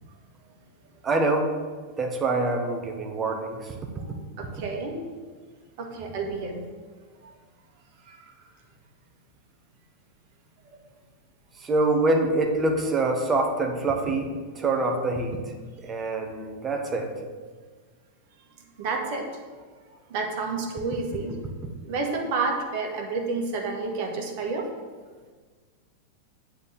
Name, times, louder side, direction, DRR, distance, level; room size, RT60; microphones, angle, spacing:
voice 1, 1.0-1.6 2.0-3.7 11.6-15.4 15.8-17.1, right 2 dB, 20° right, 3 dB, 1.3 m, -25 dB
voice 2, 4.1-5.0 5.8-6.6 7.2-7.4 8.1-8.2 15.8-16.0 18.8-19.4 20.1-21.4 21.9-24.7, right 3 dB, 45° right, 2 dB, 1.6 m, -30 dB
8.3 x 4.6 x 7.1 m, 1.5 s
figure-of-eight pair, 90°, 0 cm